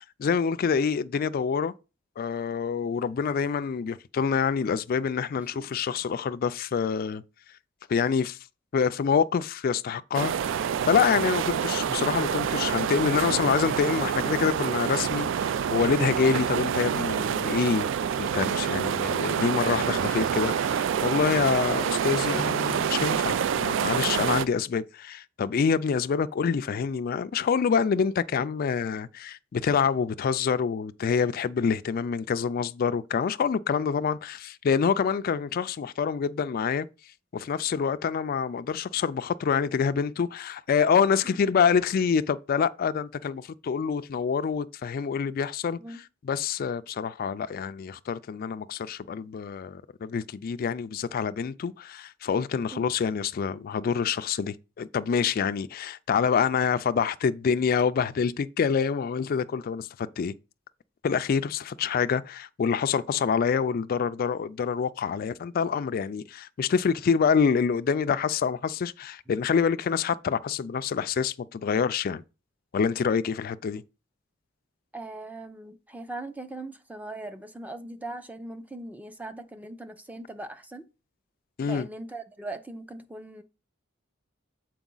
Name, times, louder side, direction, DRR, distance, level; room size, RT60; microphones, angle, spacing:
voice 1, 0.0-1.7 2.2-7.2 7.9-8.4 8.7-17.9 18.2-36.9 37.3-60.3 61.0-72.2 72.7-73.8 81.6-81.9, left 6 dB, 50° left, 0.3 m, -26 dB
sound 1, 10.1-24.5, right 8 dB, 70° right, 0.3 m, -27 dB
voice 2, 74.9-80.8 81.7-83.4, right 2 dB, 10° right, 0.6 m, -40 dB
7.1 x 4.6 x 3.8 m
head